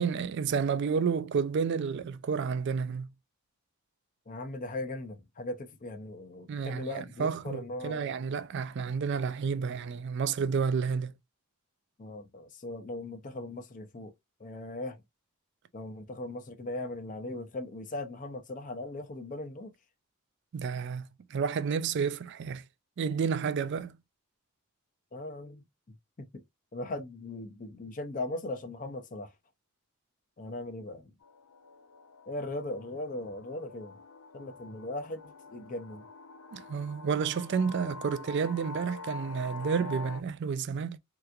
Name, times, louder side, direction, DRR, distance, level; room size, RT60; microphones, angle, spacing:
voice 1, 0.0-3.1 6.5-11.1 20.5-22.6 23.0-24.0 36.5-41.0, right 6 dB, 55° right, 0.4 m, -30 dB
voice 2, 4.3-8.1 12.0-14.1 14.4-15.0 15.7-19.7 25.1-26.4 26.7-29.3 30.4-31.1 32.3-34.0 34.3-36.1, left 2 dB, 40° left, 0.6 m, -39 dB
sound 1, 31.2-40.2, left 4 dB, 90° left, 0.5 m, -46 dB
3.3 x 2.9 x 2.4 m
head